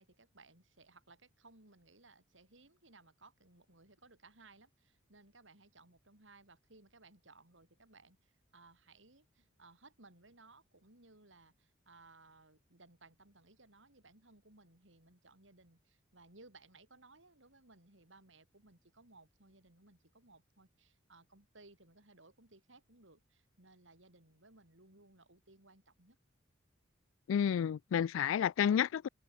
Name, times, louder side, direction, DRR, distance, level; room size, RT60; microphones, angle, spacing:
voice 1, 0.0-26.2, right 3 dB, 70° right, 5.5 m, -62 dB
voice 2, 27.3-29.1, left 8 dB, 80° left, 0.3 m, -30 dB
open air
head